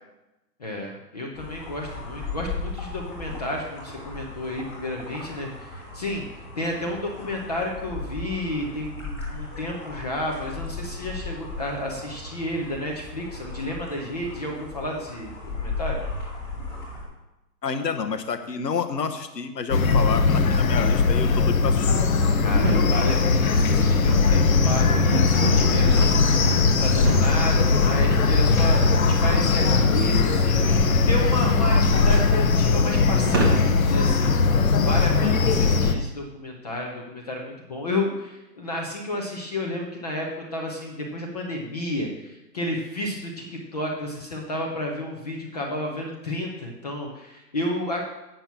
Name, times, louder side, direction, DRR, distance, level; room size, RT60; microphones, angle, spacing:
voice 1, 0.6-6.3 6.5-16.0 22.4-26.2 26.8-34.4 34.8-48.0, left 1 dB, 25° left, 0 dB, 0.8 m, -31 dB
sound 1, 1.3-17.0, left 3 dB, 5° left, 1.9 m, -36 dB
voice 2, 17.6-22.0, left 5 dB, 75° left, 8 dB, 1.2 m, -29 dB
sound 2, 19.7-35.9, left 4 dB, 55° left, 1.0 m, -19 dB
sound 3, 22.6-22.9 23.6-33.9, right 2 dB, 15° right, 0.7 m, -31 dB
9.0 x 5.9 x 5.8 m, 0.99 s
hypercardioid pair, 155°, 49 cm